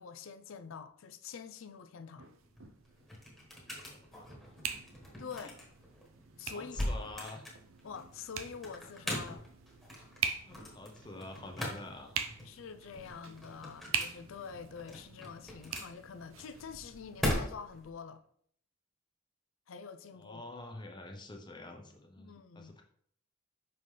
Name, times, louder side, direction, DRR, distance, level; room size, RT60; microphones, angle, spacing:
voice 1, 0.0-2.3 5.2-5.6 6.4-6.8 7.8-9.5 12.4-18.2 19.7-20.4 22.2-22.8, left 6 dB, 75° left, 0.5 m, -46 dB
sound 1, 2.2-17.3, right 7 dB, 75° right, 0.6 m, -43 dB
sound 2, 2.4-17.9, left 1 dB, ahead, 1.3 m, -41 dB
voice 2, 3.6-4.3 5.4-5.5 6.5-7.4 10.4-12.4 13.6-13.7 20.2-22.8, left 2 dB, 20° left, 0.7 m, -47 dB
5.7 x 5.5 x 3.2 m
head